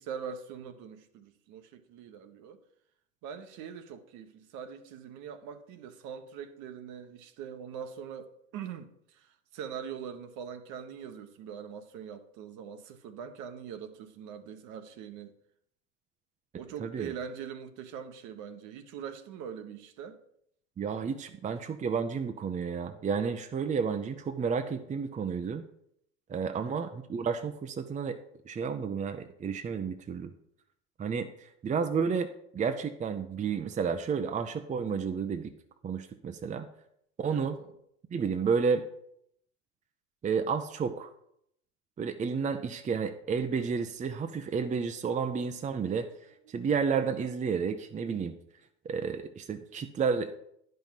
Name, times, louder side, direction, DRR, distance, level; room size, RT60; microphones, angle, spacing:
voice 1, 0.0-2.6 3.2-15.3 16.6-20.2 26.5-26.8 37.3-37.7, right 7 dB, 55° right, 1.1 m, -43 dB
voice 2, 16.8-17.1 20.8-25.6 26.3-28.2 28.5-30.3 31.0-32.3 32.5-35.5 35.8-36.7 37.2-37.6 38.1-38.8 40.2-41.1 42.0-46.1 46.5-48.3 48.8-50.3, right 6 dB, 20° right, 0.7 m, -31 dB
10.0 x 5.5 x 5.7 m
hypercardioid pair, 80°, 36 cm